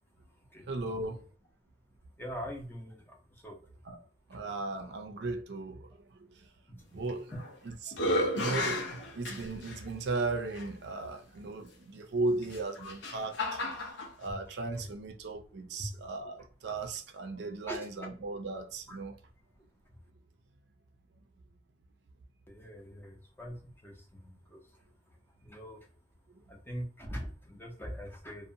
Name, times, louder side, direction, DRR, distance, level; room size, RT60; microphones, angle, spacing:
voice 1, 0.7-1.2 3.9-4.0 4.3-6.3 6.7-7.3 7.6-13.6 14.2-19.2, right 3 dB, 65° right, 0.4 m, -36 dB
voice 2, 2.2-3.6 6.8-7.0 7.3-7.4 7.7-8.0 12.8-12.9 14.2-14.4 14.7-14.9 15.8-15.9 17.7-18.1 18.9-19.0 22.5-24.6 25.4-25.9 26.5-28.5, equal, 10° left, 0.5 m, -43 dB
sound 1, 7.1-7.5 7.9-9.8 10.5-10.6 12.4-14.1, left 1 dB, 80° left, 0.6 m, -33 dB
2.5 x 2.0 x 2.6 m
head